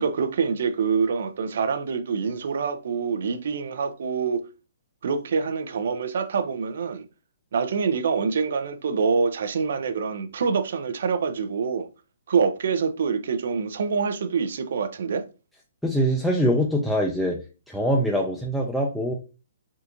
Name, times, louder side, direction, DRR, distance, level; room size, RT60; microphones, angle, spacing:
voice 1, 0.0-4.4 5.0-7.1 7.5-11.9 12.3-15.2, right 5 dB, 65° right, 0.5 m, -25 dB
voice 2, 15.8-17.4 17.7-19.1, equal, ahead, 0.4 m, -23 dB
3.6 x 2.5 x 2.8 m
hypercardioid pair, 145°, 0 cm